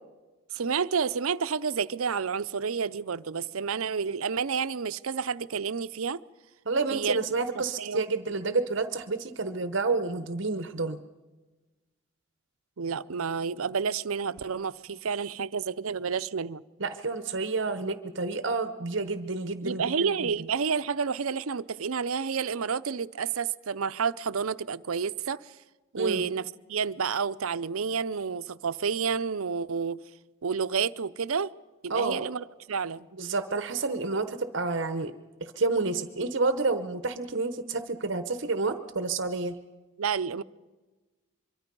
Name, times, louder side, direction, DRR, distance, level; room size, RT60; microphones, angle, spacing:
voice 1, 0.5-6.2 6.9-7.2 7.8-8.1 12.8-16.6 19.6-25.5 25.9-26.4 26.7-30.0 30.4-31.5 31.8-33.1 40.0-40.4, right 6 dB, 85° right, 0.6 m, -30 dB
voice 2, 6.7-11.0 16.8-20.5 26.0-26.3 31.9-32.3 33.2-35.1 35.4-39.6, right 3 dB, 60° right, 1.0 m, -29 dB
24.5 x 23.0 x 5.4 m
head